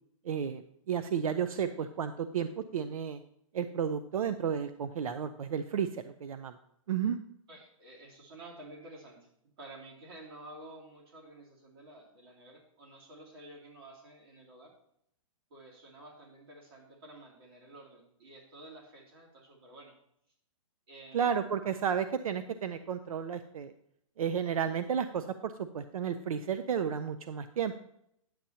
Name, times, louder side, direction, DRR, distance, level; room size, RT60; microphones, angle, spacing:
voice 1, 0.2-0.6 0.9-3.2 3.5-6.5 6.9-7.2 21.1-23.7 24.2-27.8, right 7 dB, 85° right, 11 dB, 0.6 m, -32 dB
voice 2, 7.5-9.3 9.6-14.7 15.5-19.9 20.9-21.4, right 1 dB, 45° right, -1 dB, 2.6 m, -51 dB
10.0 x 7.7 x 2.8 m, 0.73 s
hypercardioid pair, 170°, 18 cm